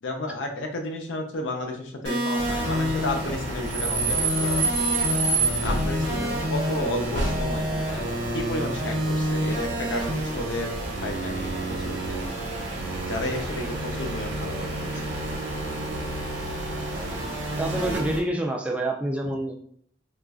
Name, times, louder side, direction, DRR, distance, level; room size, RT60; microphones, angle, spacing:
voice 1, 0.0-4.6 5.6-10.7 11.0-12.2 13.1-15.2 19.2-19.3, left 1 dB, 80° left, 3 dB, 0.6 m, -32 dB
sound 1, 2.0-18.0, equal, 50° right, 1.1 m, -30 dB
sound 2, 2.4-18.2, right 2 dB, 70° right, 0.8 m, -30 dB
voice 2, 7.7-8.1 17.6-19.6, right 1 dB, 5° right, 0 dB, 0.4 m, -28 dB
4.0 x 2.4 x 2.3 m, 0.63 s
head